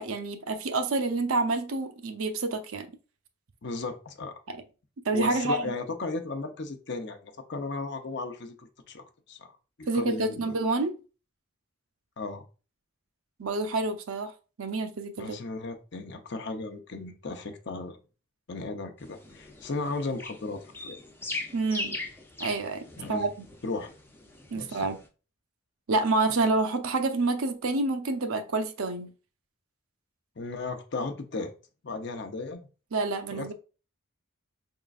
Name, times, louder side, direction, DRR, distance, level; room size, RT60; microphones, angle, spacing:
voice 1, 0.0-2.9 4.5-4.6 5.1-5.6 9.9-10.9 13.4-14.3 14.6-15.4 21.5-22.0 22.4-23.3 24.5-25.0 25.9-29.1 32.9-33.5, right 3 dB, 90° right, 0.7 m, -28 dB
voice 2, 3.6-4.3 5.1-9.5 9.8-10.6 12.2-12.4 15.2-18.0 18.5-21.0 23.0-23.3 23.6-23.9 24.5-24.9 30.4-31.5 31.8-32.6 33.3-33.5, left 3 dB, 55° left, 0.7 m, -35 dB
sound 1, 19.0-25.1, left 2 dB, 10° left, 0.6 m, -40 dB
5.0 x 3.7 x 2.4 m
head